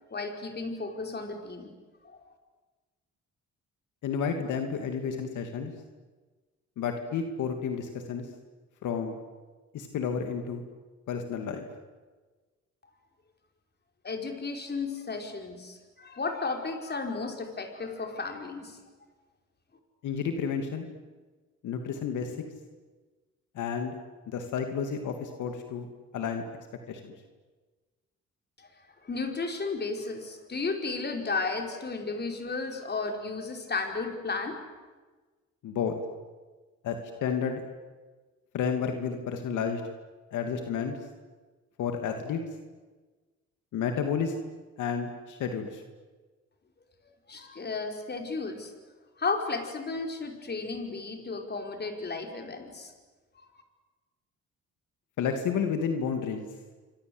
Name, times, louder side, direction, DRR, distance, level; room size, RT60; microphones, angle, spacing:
voice 1, 0.1-1.7 2.0-2.2 14.0-18.8 28.6-28.7 29.0-34.6 47.3-48.7 49.2-52.9 53.4-53.5, left 3 dB, 35° left, 4 dB, 5.2 m, -34 dB
voice 2, 4.0-5.7 6.8-8.2 8.8-9.2 9.7-10.6 11.1-11.6 20.0-20.9 21.6-22.4 23.5-23.9 24.3-25.9 26.1-26.4 26.9-27.1 35.6-35.9 36.8-37.6 38.5-39.8 40.3-41.0 41.8-42.4 43.7-44.4 44.8-45.8 55.2-56.4, left 6 dB, 80° left, 5 dB, 2.8 m, -31 dB
27.5 x 25.0 x 8.1 m, 1.3 s
cardioid pair, 90°, 30 cm